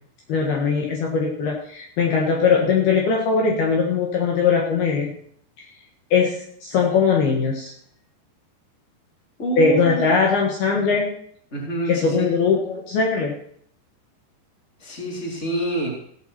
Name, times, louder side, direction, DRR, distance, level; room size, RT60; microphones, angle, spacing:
voice 1, 0.3-5.1 6.1-7.7 9.6-11.1 11.9-13.3, left 5 dB, 65° left, -1 dB, 3.3 m, -20 dB
voice 2, 9.4-10.1 11.5-12.3 14.8-16.0, right 2 dB, 15° left, -1 dB, 3.5 m, -27 dB
16.5 x 13.0 x 4.4 m, 0.64 s
omnidirectional pair, 5.3 m